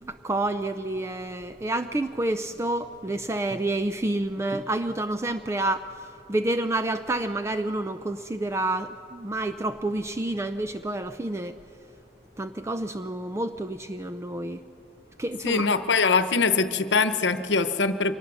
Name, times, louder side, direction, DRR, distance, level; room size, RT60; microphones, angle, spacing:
voice 1, 0.0-11.6 12.4-14.6 15.2-15.7, right 2 dB, 15° right, 9 dB, 0.4 m, -29 dB
voice 2, 15.4-18.1, left 4 dB, 80° left, 11 dB, 1.0 m, -23 dB
24.0 x 19.0 x 7.0 m, 2.8 s
head